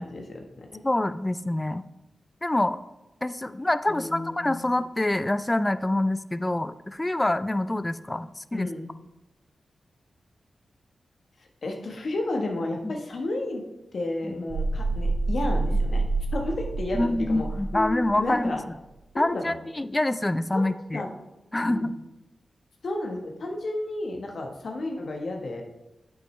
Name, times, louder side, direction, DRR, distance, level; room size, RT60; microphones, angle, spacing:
voice 1, 0.0-0.7 3.9-4.7 8.5-8.9 11.6-13.6 13.9-16.0 16.3-18.6 19.1-19.6 20.5-20.6 20.9-21.1 21.6-21.9 22.8-25.6, left 2 dB, 70° left, 2 dB, 1.2 m, -32 dB
voice 2, 0.8-1.9 2.4-2.8 3.2-8.7 12.8-12.9 16.9-18.6 19.2-21.0 21.5-22.0, left 1 dB, 20° left, 13 dB, 0.4 m, -26 dB
sound 1, 14.5-18.2, right 3 dB, 80° right, 0.8 m, -27 dB
8.3 x 7.8 x 3.2 m, 0.97 s
cardioid pair, 45°, 0 cm